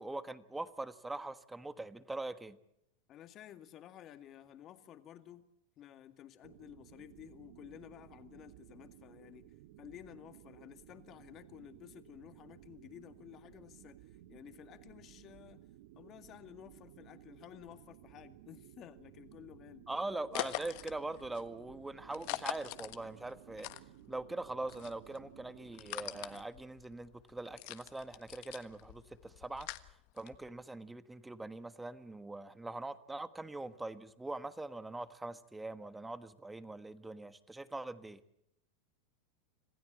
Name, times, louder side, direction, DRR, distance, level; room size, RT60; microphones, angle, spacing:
voice 1, 0.0-2.6 19.9-23.7 24.1-29.9 30.1-38.2, right 2 dB, 10° right, 1.4 m, -42 dB
voice 2, 3.1-5.5 5.8-15.7 15.9-19.9, left 11 dB, 40° left, 2.1 m, -54 dB
sound 1, 6.4-26.4, right 14 dB, 70° right, 1.1 m, -57 dB
sound 2, 20.3-24.3 24.6-30.6, left 18 dB, 60° left, 1.4 m, -44 dB
26.5 x 15.5 x 8.9 m
supercardioid pair, 120°, 0 cm